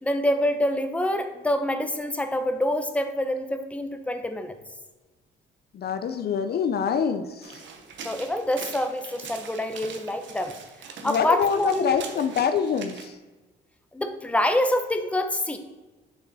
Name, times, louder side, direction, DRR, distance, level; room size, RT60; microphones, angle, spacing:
voice 1, 0.0-4.6 8.0-10.5 11.0-11.9 13.9-15.6, left 1 dB, 5° left, 7 dB, 0.7 m, -26 dB
voice 2, 5.7-7.6 11.0-13.2, left 7 dB, 55° left, 8 dB, 0.5 m, -25 dB
sound 1, 7.4-13.1, right 6 dB, 70° right, 1.0 m, -42 dB
6.9 x 5.5 x 4.1 m, 1.2 s
cardioid pair, 90°, 20 cm